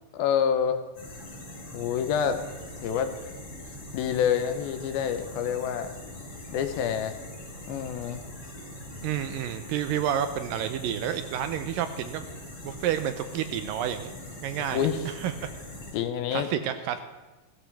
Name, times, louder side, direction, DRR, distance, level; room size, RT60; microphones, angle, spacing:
voice 1, 0.1-0.8 1.7-2.4 2.8-3.3 3.9-5.9 6.5-7.2 7.7-8.2 14.7-15.1 15.9-16.5, left 8 dB, 85° left, 9 dB, 2.7 m, -27 dB
sound 1, 0.9-15.9, left 1 dB, 45° left, 5.8 m, -42 dB
voice 2, 9.0-12.3 12.6-14.1 14.4-15.5 16.3-17.0, right 10 dB, 80° right, 9 dB, 2.2 m, -30 dB
16.0 x 14.5 x 3.4 m, 1.2 s
omnidirectional pair, 4.4 m